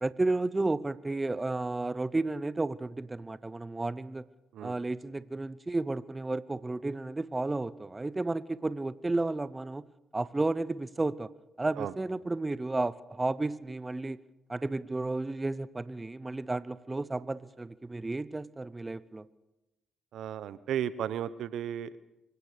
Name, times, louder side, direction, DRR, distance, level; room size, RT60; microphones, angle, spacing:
voice 1, 0.0-4.3 4.6-9.9 10.1-11.3 11.6-14.2 14.5-19.3, right 2 dB, 20° right, 17 dB, 0.8 m, -32 dB
voice 2, 20.1-22.0, right 10 dB, 75° right, 16 dB, 0.9 m, -34 dB
25.0 x 16.5 x 6.7 m, 0.96 s
supercardioid pair, 60°, 0 cm